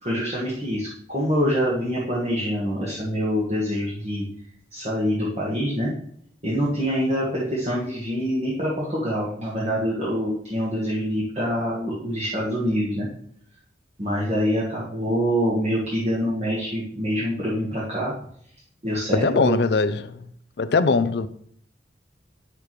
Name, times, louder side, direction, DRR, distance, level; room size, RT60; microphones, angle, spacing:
voice 1, 0.0-4.2 4.7-5.9 6.4-13.1 14.0-18.1 18.8-19.6, equal, 35° right, 1.5 m, -25 dB
voice 2, 19.1-20.3 20.6-21.3, left 4 dB, 65° left, 0.5 m, -21 dB
8.7 x 6.7 x 3.2 m
head